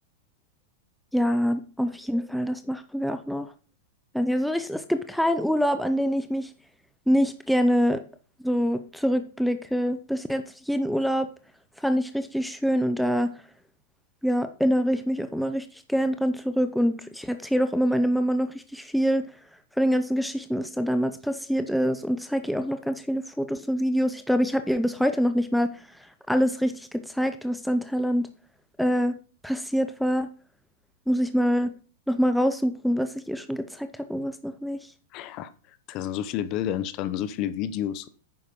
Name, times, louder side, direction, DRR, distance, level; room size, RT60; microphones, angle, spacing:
voice 1, 1.1-3.5 4.1-6.5 7.1-8.0 8.4-11.3 11.8-13.3 14.2-19.3 19.8-28.3 28.8-29.1 29.4-30.3 31.1-31.7 32.1-34.8, equal, ahead, 9 dB, 0.6 m, -25 dB
voice 2, 35.1-35.5 35.9-38.1, left 11 dB, 35° left, 15 dB, 0.8 m, -30 dB
9.4 x 6.3 x 5.3 m, 0.39 s
supercardioid pair, 145°, 0 cm